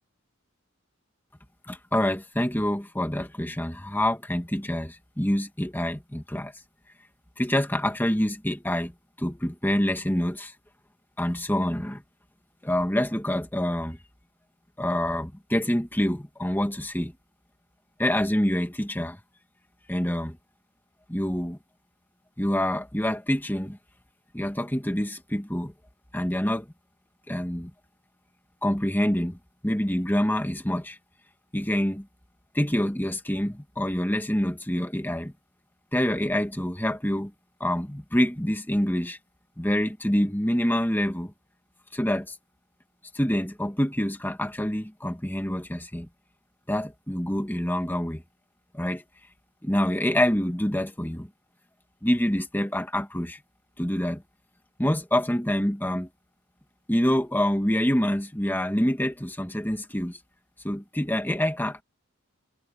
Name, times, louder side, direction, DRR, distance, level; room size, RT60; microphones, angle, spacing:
voice 1, 1.7-6.5 7.4-8.9 9.2-10.5 11.2-12.0 12.6-14.0 14.8-17.1 18.0-19.2 19.9-20.4 21.1-21.6 22.4-23.8 24.3-25.7 26.1-26.7 27.3-27.7 28.6-29.4 29.6-31.0 31.5-32.1 32.5-35.3 35.9-37.3 37.6-39.2 39.6-41.3 41.9-42.4 43.1-46.1 46.7-48.2 48.7-49.0 49.6-51.3 52.0-53.4 53.8-54.2 54.8-56.1 56.9-60.2 60.6-61.8, equal, 10° left, 2.0 m, -26 dB
head